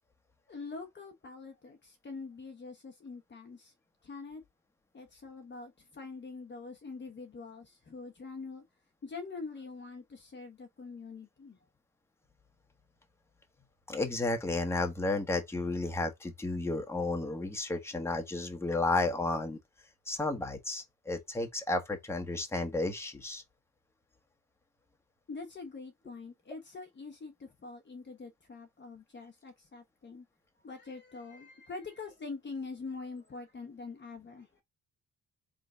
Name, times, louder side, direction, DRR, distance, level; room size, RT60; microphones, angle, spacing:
voice 1, 0.5-3.7 4.0-4.4 4.9-8.6 9.0-11.6 25.3-30.3 30.6-34.6, left 4 dB, 35° left, 1.1 m, -44 dB
voice 2, 13.9-19.6 20.1-23.4, left 2 dB, 10° left, 1.2 m, -32 dB
3.8 x 3.4 x 3.8 m
cardioid pair, 85°, 32 cm